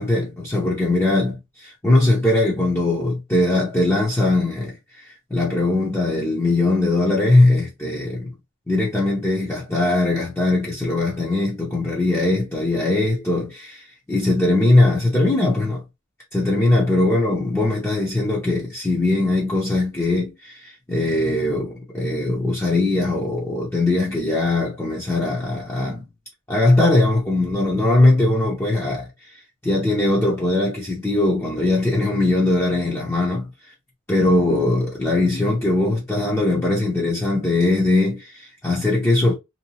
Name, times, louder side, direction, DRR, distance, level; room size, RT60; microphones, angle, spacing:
voice 1, 0.0-8.3 8.7-15.8 16.3-26.1 26.5-33.5 34.1-39.3, left 2 dB, 10° left, 0.6 m, -20 dB
2.8 x 2.2 x 2.7 m
head